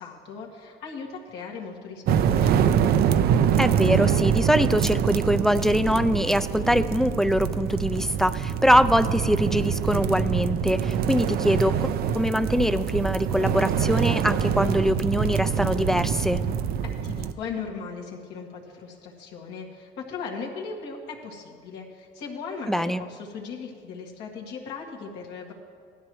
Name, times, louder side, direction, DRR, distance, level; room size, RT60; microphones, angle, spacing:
voice 1, 0.0-2.9 17.0-25.5, left 5 dB, 85° left, -1 dB, 2.1 m, -38 dB
sound 1, 2.1-17.3, right 8 dB, 65° right, 0.5 m, -25 dB
voice 2, 3.6-11.9 12.1-16.4 22.7-23.0, equal, ahead, 12 dB, 0.4 m, -23 dB
17.0 x 12.5 x 3.2 m, 2.1 s
cardioid pair, 110°, 17 cm